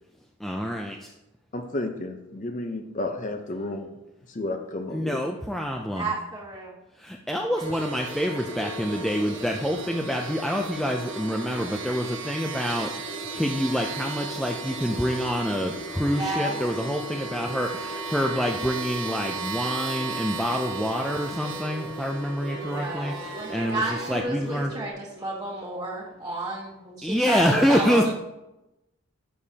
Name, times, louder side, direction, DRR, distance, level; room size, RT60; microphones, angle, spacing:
voice 1, 0.4-1.1 4.9-6.1 7.0-24.7 27.0-28.0, equal, ahead, 1 dB, 0.3 m, -27 dB
voice 2, 1.5-3.9 4.3-5.2, left 2 dB, 35° left, 5 dB, 0.7 m, -32 dB
voice 3, 6.0-6.7 16.1-16.6 22.6-28.1, right 2 dB, 15° right, -6 dB, 1.3 m, -32 dB
sound 1, 7.5-24.9, equal, 75° left, 1.9 m, -39 dB
sound 2, 7.6-24.2, right 5 dB, 60° right, 1.1 m, -37 dB
11.0 x 6.7 x 2.8 m, 0.96 s
head